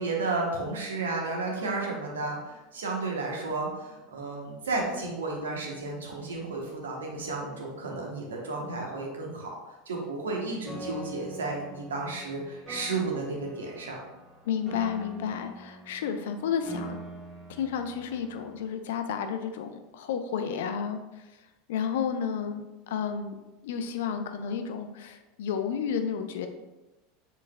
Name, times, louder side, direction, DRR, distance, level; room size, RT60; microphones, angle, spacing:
voice 1, 0.0-9.5 9.9-14.0, right 3 dB, 75° right, -1 dB, 1.0 m, -32 dB
Piano, 10.7-18.6, right 1 dB, 25° right, 1.2 m, -44 dB
voice 2, 14.4-17.0 17.5-21.3 21.7-23.4 23.6-26.5, left 7 dB, 65° left, 7 dB, 0.4 m, -31 dB
4.5 x 4.0 x 2.2 m, 1.0 s
figure-of-eight pair, 80°, 0 cm